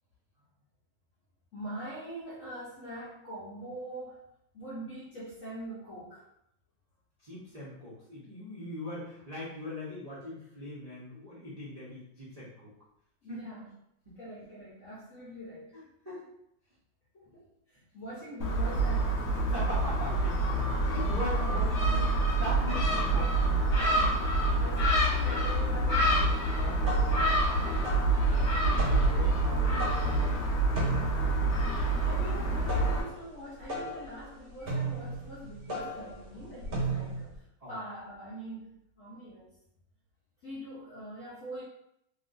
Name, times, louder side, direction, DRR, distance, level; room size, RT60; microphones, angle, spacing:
voice 1, 1.5-4.3 4.5-6.3 13.2-13.7 14.2-15.7 17.1-19.7 21.4-21.6 23.7-26.4 27.5-28.1 32.0-39.6 40.4-41.6, right 1 dB, 70° left, -7 dB, 0.7 m, -43 dB
voice 2, 7.2-12.7 13.3-13.6 14.1-14.2 15.7-16.2 19.4-24.0 26.3-30.4 30.7-32.0 36.3-36.4 37.6-37.8, left 1 dB, 80° right, -10 dB, 0.3 m, -41 dB
Gull seagull, 18.4-33.0, right 2 dB, 55° left, 1.1 m, -27 dB
sound 1, 26.6-37.4, right 2 dB, 55° right, 1.5 m, -36 dB
2.9 x 2.9 x 2.6 m, 0.78 s
omnidirectional pair, 2.1 m